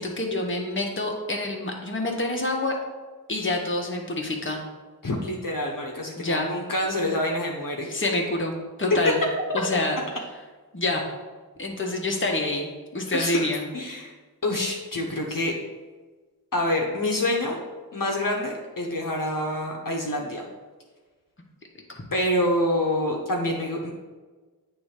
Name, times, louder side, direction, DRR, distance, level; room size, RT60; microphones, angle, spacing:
voice 1, 0.0-2.7 3.3-4.6 6.2-6.5 7.9-8.5 8.8-9.2 9.5-10.0 10.7-11.1 11.6-12.7 12.9-13.6 21.9-22.0, left 2 dB, 30° left, 0 dB, 1.1 m, -27 dB
voice 2, 5.0-8.0 13.1-13.5 13.7-14.1 14.4-15.5 16.5-17.6 17.9-20.4 22.1-23.9, left 1 dB, 55° left, -1 dB, 1.0 m, -27 dB
8.5 x 3.2 x 5.0 m, 1.3 s
wide cardioid pair, 50°, 38 cm